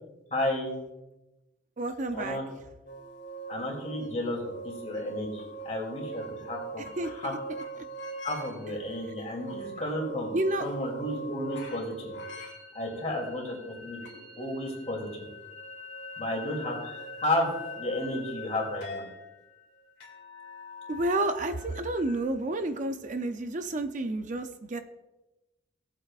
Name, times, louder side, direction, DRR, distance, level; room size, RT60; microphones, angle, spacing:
voice 1, 0.3-0.7 2.1-2.4 3.5-7.3 8.2-12.1 12.7-14.0 14.4-15.2 16.2-19.0, left 1 dB, 35° left, -1 dB, 2.8 m, -32 dB
voice 2, 1.8-2.4 6.8-7.4 7.8-7.9 10.3-10.6 20.9-24.8, right 2 dB, 40° right, 8 dB, 0.5 m, -30 dB
sound 1, 2.9-22.2, right 1 dB, 60° left, 2.6 m, -42 dB
17.5 x 8.1 x 2.4 m, 1.0 s
head